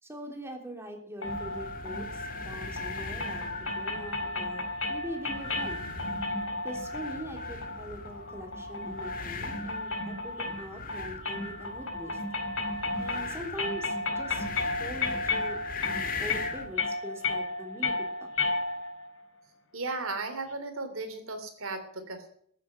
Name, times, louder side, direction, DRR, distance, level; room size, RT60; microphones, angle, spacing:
voice 1, 0.0-5.9 6.6-12.2 13.0-15.6 15.8-17.9 18.2-18.3, equal, 10° right, 2 dB, 3.2 m, -42 dB
sound 1, 1.2-19.1, left 3 dB, 70° left, 4.4 m, -34 dB
sound 2, 1.2-16.7, left 4 dB, 45° left, 2.1 m, -41 dB
voice 2, 19.7-22.3, right 3 dB, 70° right, 8 dB, 3.1 m, -35 dB
14.5 x 8.6 x 8.8 m, 0.63 s
head